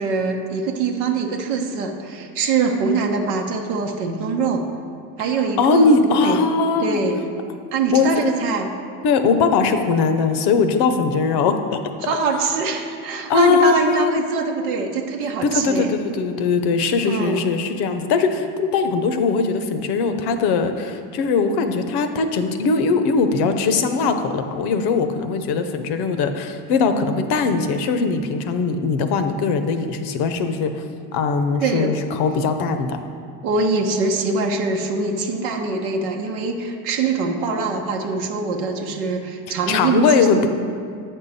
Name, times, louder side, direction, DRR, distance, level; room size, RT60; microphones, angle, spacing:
voice 1, 0.0-4.7 5.2-6.4 6.8-7.2 7.7-8.7 12.0-15.9 17.0-17.4 31.6-31.9 33.4-40.3, right 4 dB, 85° right, 2 dB, 0.8 m, -23 dB
voice 2, 5.6-7.0 7.9-8.1 9.0-11.8 13.3-14.1 15.4-30.8 31.1-33.0 39.7-40.5, left 4 dB, 65° left, 8 dB, 0.8 m, -20 dB
8.1 x 5.5 x 4.1 m, 2.3 s
supercardioid pair, 85°, 41 cm